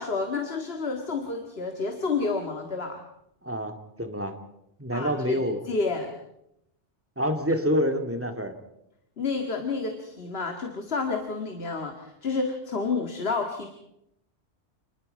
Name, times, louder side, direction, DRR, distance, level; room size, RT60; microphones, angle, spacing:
voice 1, 0.0-3.0 4.9-6.1 9.2-13.7, left 4 dB, 60° left, 5 dB, 2.1 m, -30 dB
voice 2, 3.4-3.7 4.0-4.3 4.8-5.6 7.2-8.5, equal, 10° right, 6 dB, 2.0 m, -27 dB
28.5 x 20.5 x 5.4 m, 0.81 s
omnidirectional pair, 1.2 m